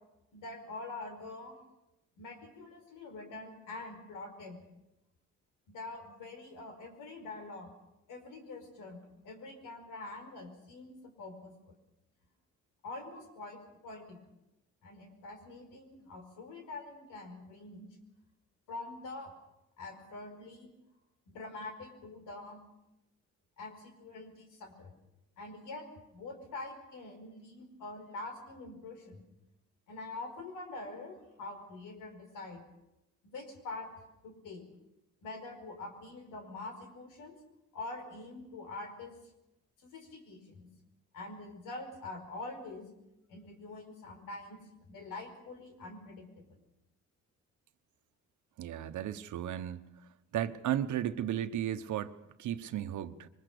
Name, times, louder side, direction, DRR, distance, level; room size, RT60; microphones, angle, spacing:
voice 1, 0.3-1.6 2.2-4.6 5.7-7.7 8.1-11.7 12.8-14.2 14.8-17.9 18.7-19.3 19.8-20.7 21.3-22.6 23.6-24.9 25.4-29.3 29.9-32.6 33.2-33.9 34.2-34.7 35.2-37.4 37.7-39.2 39.8-40.7 41.1-42.9 43.3-46.4, left 2 dB, 90° left, 5 dB, 5.0 m, -45 dB
voice 2, 48.6-49.8 50.3-53.3, right 11 dB, 75° right, 10 dB, 1.3 m, -35 dB
23.0 x 21.0 x 7.0 m, 0.93 s
cardioid pair, 90°, 30 cm